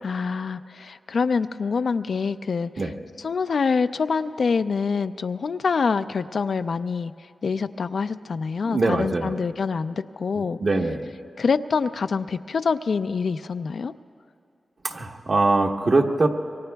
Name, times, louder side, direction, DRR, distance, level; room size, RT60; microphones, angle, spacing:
voice 1, 0.0-2.9 3.2-7.1 7.4-10.6 11.4-13.9, left 5 dB, 70° left, 10 dB, 0.4 m, -25 dB
voice 2, 8.6-9.3 10.6-11.0 14.8-16.3, right 2 dB, 55° right, 2 dB, 1.2 m, -22 dB
27.0 x 23.5 x 2.3 m, 2.5 s
cardioid pair, 60°, 0 cm